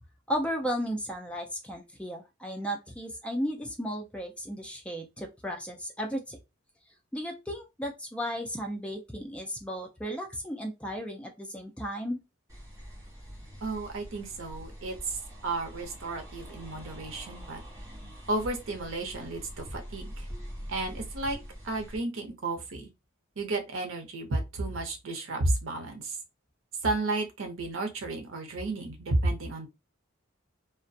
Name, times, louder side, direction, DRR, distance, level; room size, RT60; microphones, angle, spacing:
voice 1, 0.3-6.4 7.1-12.2, equal, 5° left, 0.4 m, -34 dB
sound 1, 12.5-22.0, equal, 15° right, 0.8 m, -44 dB
voice 2, 13.6-15.2 15.4-17.6 18.3-20.3 20.7-21.4 21.6-22.9 23.4-26.2 26.8-29.7, right 2 dB, 80° right, 0.7 m, -32 dB
2.3 x 2.1 x 2.6 m
head